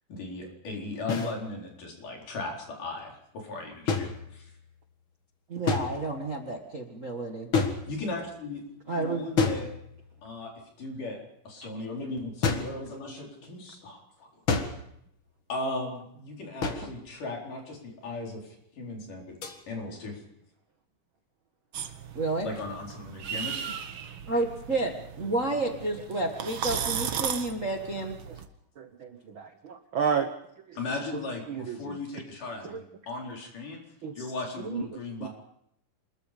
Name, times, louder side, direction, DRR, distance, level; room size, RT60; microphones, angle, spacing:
voice 1, 0.1-4.5 7.9-8.6 8.9-9.7 10.2-11.2 11.4-14.6 15.5-19.4 19.7-20.2 22.4-23.7 30.8-33.8 34.1-35.3, left 2 dB, 70° left, 0 dB, 5.8 m, -37 dB
sound 1, 1.1-1.4 3.9-4.7 5.7-6.3 7.5-8.3 9.4-10.2 12.4-12.8 14.5-15.0 16.6-17.0 19.4-19.6, left 4 dB, 45° left, 2.2 m, -29 dB
voice 2, 5.5-7.5 8.9-9.5 22.1-22.5 24.3-28.2, right 2 dB, 35° right, 2 dB, 1.3 m, -30 dB
sound 2, 21.7-28.5, right 8 dB, 60° right, 1.4 m, -36 dB
voice 3, 28.8-29.1 29.3-30.3 31.5-32.0 34.0-34.1 34.7-34.8 35.2-35.3, right 6 dB, 75° right, 7 dB, 1.1 m, -30 dB
26.5 x 21.5 x 5.2 m, 0.75 s
omnidirectional pair, 3.9 m